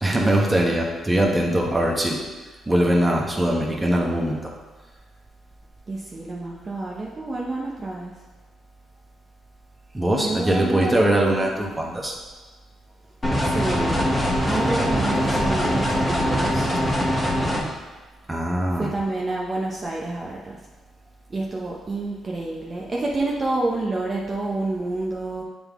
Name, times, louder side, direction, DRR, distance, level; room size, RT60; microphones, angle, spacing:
voice 1, 0.0-2.2 2.7-4.4 9.9-12.2 18.3-18.9, right 1 dB, 10° right, -1 dB, 1.2 m, -21 dB
voice 2, 5.9-8.1 10.2-11.5 13.4-14.1 14.4-16.7 18.8-20.6 21.3-25.4, right 2 dB, 35° right, -3 dB, 0.8 m, -28 dB
sound 1, 13.2-17.6, equal, 20° left, 1.3 m, -22 dB
7.8 x 3.7 x 3.6 m, 1.3 s
cardioid pair, 90°, 0 cm